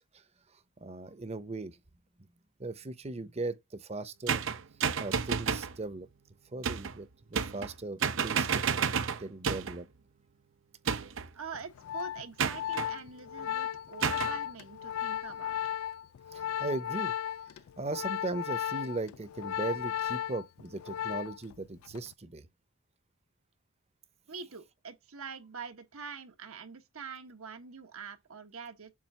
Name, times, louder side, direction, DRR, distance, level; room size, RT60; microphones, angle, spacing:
voice 1, 0.5-1.8 2.6-4.4 5.0-6.1 6.5-8.6 9.2-9.9 16.3-17.1 17.8-22.5, right 2 dB, 30° right, 0.8 m, -38 dB
sound 1, 4.3-5.8 6.6-7.0 7.3-9.8 10.9-11.3 12.4-12.9 14.0-14.4, right 6 dB, 60° right, 0.7 m, -31 dB
voice 2, 11.3-15.6 24.3-28.9, right 5 dB, 80° right, 1.3 m, -44 dB
Organ, 11.5-21.5 21.8-22.1, left 10 dB, 75° left, 0.3 m, -35 dB
7.5 x 2.5 x 5.4 m
head